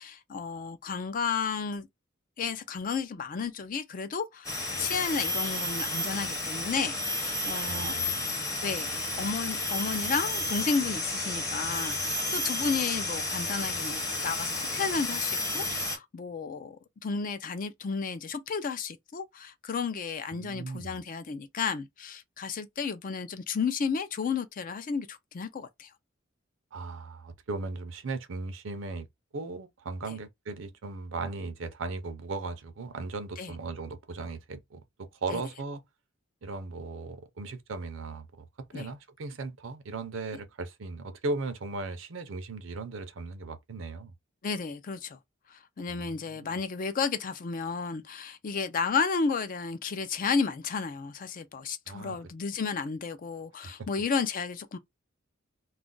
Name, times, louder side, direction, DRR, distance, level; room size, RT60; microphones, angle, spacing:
voice 1, 0.0-1.9 2.4-4.5 4.8-8.0 8.6-25.9 33.4-33.5 35.3-35.4 38.7-38.9 44.4-45.2 45.5-54.8, left 5 dB, 45° left, 0.4 m, -32 dB
sound 1, 4.4-16.0, left 2 dB, 15° left, 0.7 m, -32 dB
voice 2, 7.7-8.2 20.3-21.0 26.7-29.1 29.3-35.8 36.4-44.1 45.9-46.6 51.9-52.2 53.6-53.9, right 3 dB, 65° right, 0.6 m, -37 dB
2.4 x 2.1 x 3.8 m
head